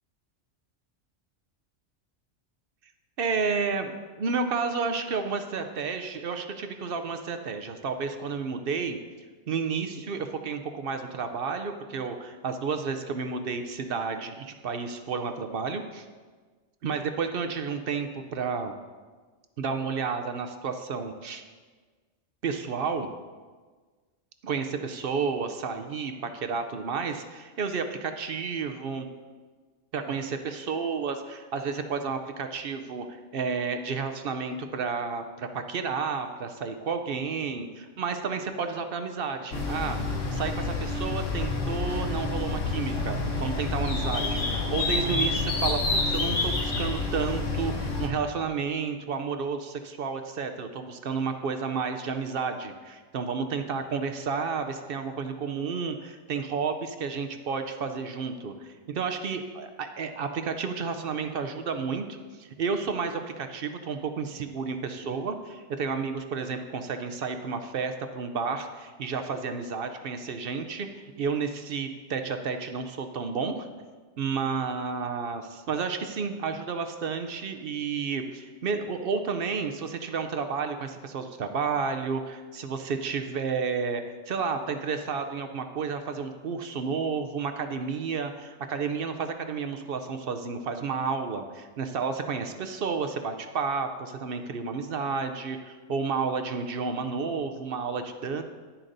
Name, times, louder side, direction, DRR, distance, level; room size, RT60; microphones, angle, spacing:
voice 1, 3.2-9.0 9.5-16.1 16.8-18.7 19.6-21.4 22.4-23.1 24.4-29.0 29.9-40.0 40.3-44.4 44.7-73.7 74.2-98.4, right 5 dB, 55° right, 7 dB, 0.7 m, -31 dB
sound 1, 39.5-48.1, left 3 dB, 85° left, 1.5 m, -28 dB
10.5 x 9.9 x 2.6 m, 1.4 s
omnidirectional pair, 1.3 m